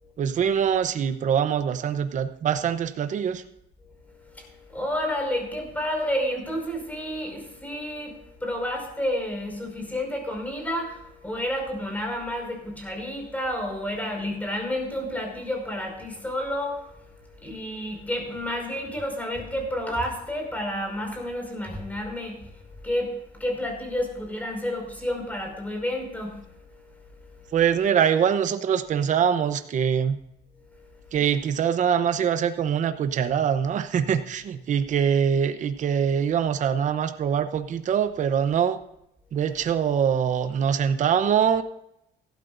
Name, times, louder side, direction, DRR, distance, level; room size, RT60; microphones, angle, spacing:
voice 1, 0.2-3.4 27.5-30.2 31.1-38.8 39.3-41.6, right 8 dB, 45° right, 10 dB, 0.9 m, -23 dB
voice 2, 3.8-27.6 30.6-31.2, left 1 dB, 10° left, 1 dB, 5.3 m, -31 dB
17.0 x 12.5 x 2.6 m, 0.80 s
cardioid pair, 110°, 17 cm